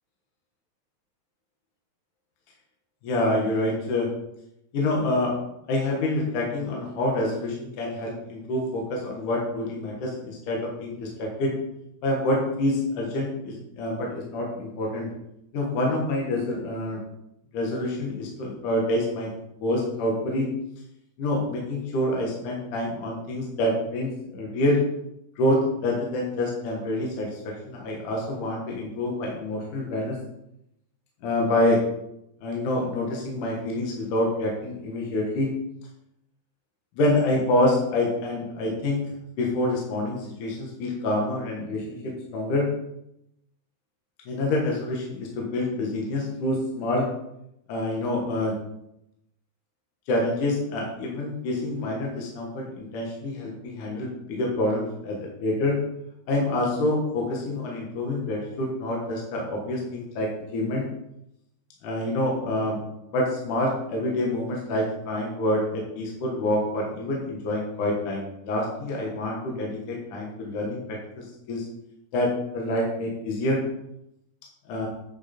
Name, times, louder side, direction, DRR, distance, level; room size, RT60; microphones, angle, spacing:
voice 1, 3.0-4.1 4.7-5.3 5.7-11.5 12.0-15.1 15.5-17.0 17.5-19.3 19.6-20.5 21.2-24.8 25.4-30.2 31.2-31.8 32.4-35.5 37.0-39.0 39.4-42.0 42.3-42.7 44.3-47.1 47.7-48.6 50.1-55.8 56.3-60.8 61.8-62.8 63.1-71.7 72.1-73.6 74.7-74.9, left 1 dB, 60° left, -2 dB, 2.8 m, -27 dB
9.4 x 6.9 x 4.4 m, 0.81 s
omnidirectional pair, 4.7 m